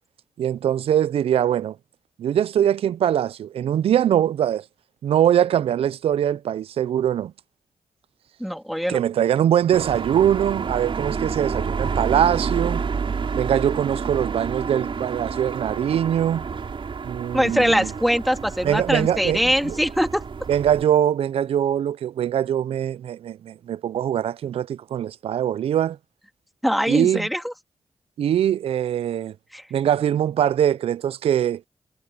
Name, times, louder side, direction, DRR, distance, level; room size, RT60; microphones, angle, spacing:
voice 1, 0.4-1.8 2.2-4.6 5.0-7.3 8.9-12.8 13.3-16.5 17.0-17.9 18.6-19.7 20.5-26.0 26.9-27.3 28.2-29.3 29.7-31.6, right 10 dB, 80° right, 0.5 m, -22 dB
voice 2, 8.4-9.0 17.3-20.2 26.6-27.5 29.5-29.6, equal, ahead, 2.4 m, -22 dB
sound 1, 9.7-20.8, right 5 dB, 65° right, 5.4 m, -29 dB
supercardioid pair, 40°, 10 cm